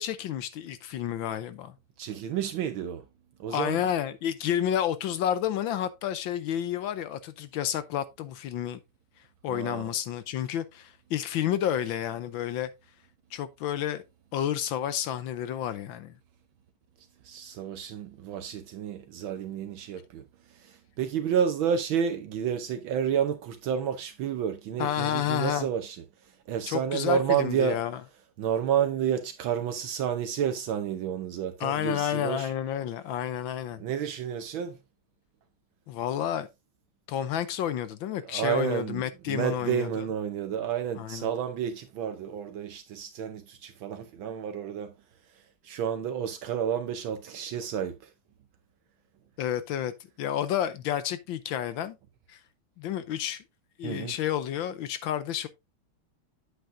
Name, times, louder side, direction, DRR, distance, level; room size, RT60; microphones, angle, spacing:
voice 1, 0.0-1.7 3.5-8.8 9.4-12.7 13.3-14.0 14.3-16.2 24.8-25.7 26.7-28.0 31.6-33.8 35.9-36.5 37.1-40.1 41.0-41.3 49.4-49.9 50.2-52.0 52.3-52.4 52.8-53.4 53.8-55.5, left 10 dB, 75° left, 1.4 m, -30 dB
voice 2, 2.0-3.0 3.4-3.8 9.5-9.9 17.2-20.2 20.5-26.0 26.5-27.8 28.4-32.5 33.8-34.8 38.2-44.9 45.6-48.0 53.8-54.2, right 8 dB, 75° right, 1.5 m, -30 dB
8.2 x 8.1 x 2.6 m
omnidirectional pair, 2.3 m